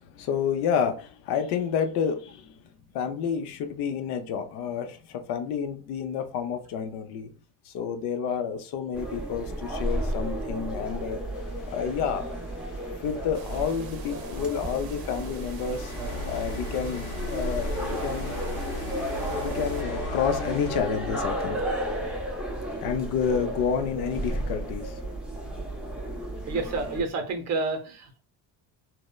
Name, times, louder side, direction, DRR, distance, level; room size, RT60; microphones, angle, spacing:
voice 1, 0.0-2.7 2.9-7.3 7.6-11.2 11.7-12.3 13.0-15.9 16.3-18.4 19.4-21.7 22.8-25.0, left 7 dB, 85° left, 0.6 m, -29 dB
sound 1, 8.9-27.0, right 1 dB, 5° right, 0.4 m, -33 dB
sound 2, 11.3-20.8, left 5 dB, 40° left, 0.7 m, -40 dB
sound 3, 13.3-19.8, right 8 dB, 85° right, 0.6 m, -46 dB
voice 2, 26.5-28.2, right 3 dB, 45° right, 0.7 m, -29 dB
3.1 x 2.0 x 2.2 m
cardioid pair, 135°, 38 cm